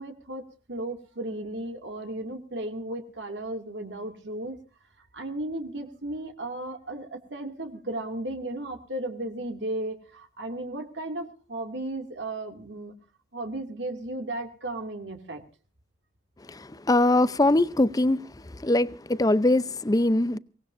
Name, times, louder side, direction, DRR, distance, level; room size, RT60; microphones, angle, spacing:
voice 1, 0.0-4.6 5.1-12.9 13.3-15.4, right 1 dB, 80° right, 2.4 m, -35 dB
voice 2, 16.5-18.2 18.5-20.4, left 2 dB, 20° left, 0.6 m, -22 dB
23.5 x 18.5 x 2.6 m
head